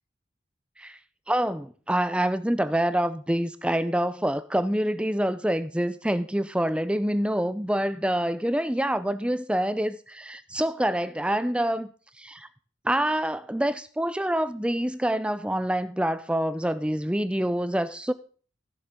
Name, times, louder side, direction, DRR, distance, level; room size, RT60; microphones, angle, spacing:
voice 1, 1.3-11.9 12.2-12.5 12.8-18.1, right 1 dB, 5° right, 0.5 m, -26 dB
15.5 x 7.0 x 3.8 m
head